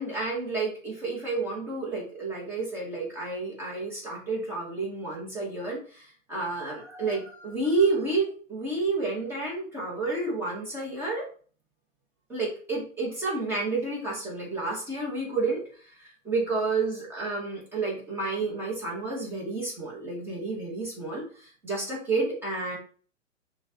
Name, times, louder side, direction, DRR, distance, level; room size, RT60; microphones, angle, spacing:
voice 1, 0.0-11.3 12.3-15.6 16.2-22.8, right 3 dB, 5° right, -5 dB, 1.0 m, -30 dB
6.2 x 2.3 x 2.7 m, 0.42 s
hypercardioid pair, 145°, 39 cm